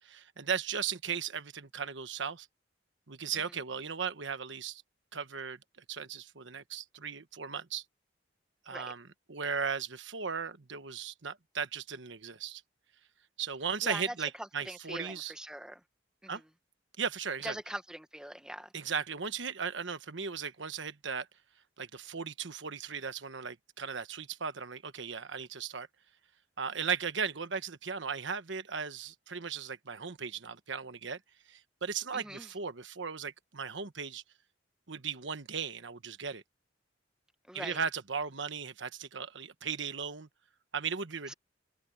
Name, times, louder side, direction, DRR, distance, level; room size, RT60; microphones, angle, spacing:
voice 1, 0.0-2.5 3.1-4.8 5.1-5.6 5.9-7.8 8.7-12.6 13.4-15.3 16.3-16.4 17.0-17.5 18.7-21.3 21.8-25.9 26.6-31.2 31.5-34.2 34.9-36.4 37.5-40.3 40.7-41.3, right 6 dB, 80° right, 1.2 m, -37 dB
voice 2, 13.8-15.8 16.2-16.4 17.4-18.7 32.1-32.5 37.5-37.8 41.3-41.4, right 1 dB, 5° right, 1.2 m, -42 dB
head